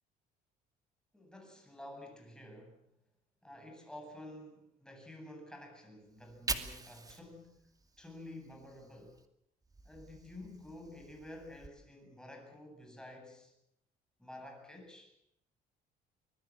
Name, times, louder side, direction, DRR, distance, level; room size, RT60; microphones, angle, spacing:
voice 1, 1.1-2.9 3.4-7.7 8.0-9.2 9.8-13.5 14.2-15.2, left 1 dB, 5° left, 3 dB, 7.9 m, -50 dB
Fire, 6.1-9.3 9.6-11.7, right 3 dB, 20° right, 2.4 m, -45 dB
25.0 x 21.0 x 7.5 m, 0.77 s
cardioid pair, 110°, 17 cm